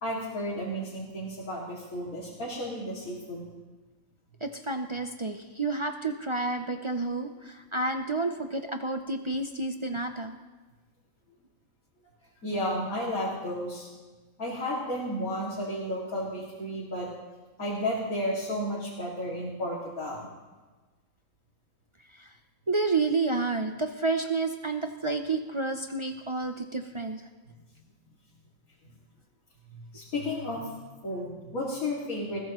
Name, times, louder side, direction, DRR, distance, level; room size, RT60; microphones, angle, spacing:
voice 1, 0.0-3.5 12.4-13.9 14.4-17.1 17.6-20.3 29.7-32.4, left 1 dB, 90° left, -6 dB, 2.8 m, -33 dB
voice 2, 4.4-10.4 22.2-22.3 22.7-27.2, right 3 dB, 45° right, 5 dB, 0.4 m, -30 dB
20.5 x 16.0 x 3.0 m, 1.3 s
omnidirectional pair, 1.4 m